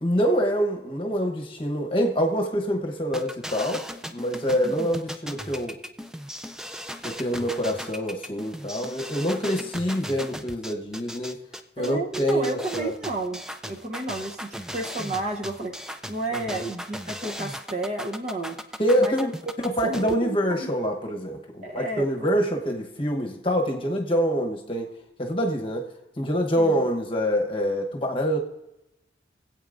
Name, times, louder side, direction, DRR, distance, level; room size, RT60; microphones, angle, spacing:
voice 1, 0.0-5.8 7.0-11.4 11.8-12.9 16.3-16.6 18.8-19.3 19.8-24.9 25.2-25.9 26.2-28.4, equal, 30° left, 2 dB, 1.0 m, -25 dB
sound 1, 3.1-20.1, equal, 5° right, 0.3 m, -37 dB
voice 2, 11.8-18.6 19.0-19.3 19.6-20.7 21.6-22.3 26.6-26.9, right 2 dB, 40° right, 2 dB, 0.9 m, -32 dB
23.0 x 8.3 x 2.6 m, 0.92 s
head